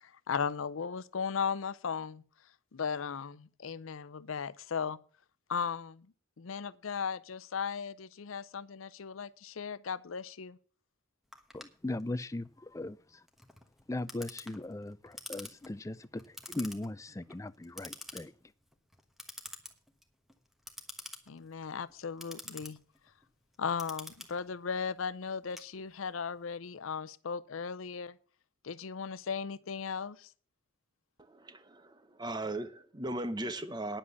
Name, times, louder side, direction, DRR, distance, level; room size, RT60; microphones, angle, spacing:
voice 1, 0.0-2.2 2.7-5.0 5.5-6.1 6.4-10.6 21.3-22.8 23.6-28.2 28.6-30.3, left 6 dB, 80° left, 0.6 m, -36 dB
Clock, 11.3-26.3, left 1 dB, ahead, 1.2 m, -49 dB
voice 2, 11.5-13.0 13.9-18.3, left 2 dB, 15° left, 0.4 m, -38 dB
voice 3, 31.3-34.0, right 1 dB, 20° right, 0.9 m, -38 dB
10.0 x 7.4 x 7.1 m
head